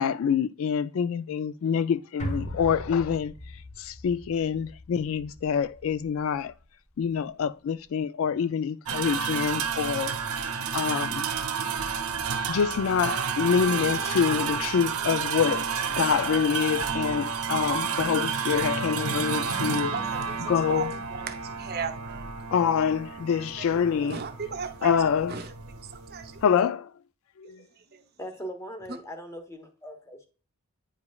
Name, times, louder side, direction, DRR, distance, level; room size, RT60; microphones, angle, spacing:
voice 1, 0.0-3.3 3.8-6.5 7.0-10.2 10.7-11.2 12.5-19.9 20.5-20.9 22.5-24.2 24.8-25.4 26.4-26.9 27.4-27.6, left 7 dB, 60° left, 0.3 m, -26 dB
sound 1, 2.2-6.6 7.0-7.1, right 1 dB, 35° left, 1.2 m, -39 dB
sound 2, 8.9-26.4, right 6 dB, 75° right, 0.8 m, -31 dB
voice 2, 19.7-22.3 23.2-25.0 25.3-25.5 25.8-26.4 27.4-27.5 27.9-28.0 28.9-29.0, right 5 dB, 45° right, 0.6 m, -37 dB
voice 3, 28.2-30.3, equal, 15° left, 1.0 m, -40 dB
9.4 x 5.0 x 2.3 m
head